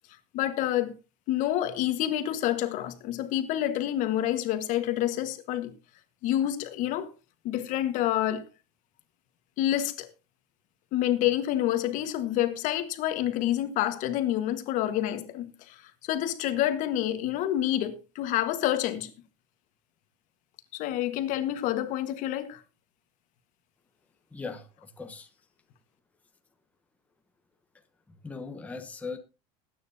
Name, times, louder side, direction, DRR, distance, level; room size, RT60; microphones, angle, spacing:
voice 1, 0.3-0.9 1.3-5.7 6.2-7.1 7.4-8.4 9.6-10.1 10.9-19.1 20.7-22.6, left 12 dB, 50° left, 1.5 m, -28 dB
voice 2, 24.3-25.3 28.1-29.2, left 4 dB, 10° left, 1.1 m, -39 dB
20.0 x 9.5 x 2.8 m
supercardioid pair, 140°, 17 cm